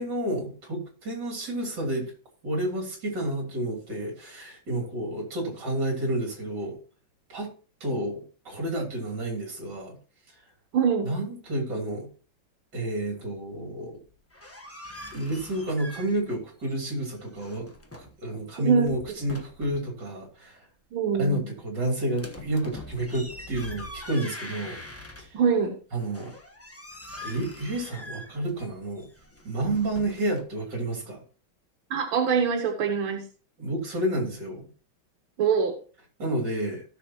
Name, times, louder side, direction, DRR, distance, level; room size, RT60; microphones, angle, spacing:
voice 1, 0.0-2.1 2.4-6.8 7.3-7.5 7.8-10.0 11.0-12.1 12.7-14.0 15.1-17.7 18.0-20.7 21.2-24.8 25.2-25.4 25.9-26.3 27.2-29.1 29.4-31.2 33.6-34.7 36.2-36.8, right 1 dB, 60° right, 1 dB, 3.6 m, -30 dB
voice 2, 10.7-11.1 18.6-19.0 20.9-21.5 25.3-25.8 31.9-33.3 35.4-35.8, right 6 dB, 90° right, 3 dB, 2.0 m, -24 dB
sound 1, 14.1-16.4 16.6-18.2 18.7-19.9 22.1-25.6 26.0-30.4, left 1 dB, 10° left, 0.7 m, -43 dB
16.0 x 6.5 x 2.9 m, 0.38 s
omnidirectional pair, 2.2 m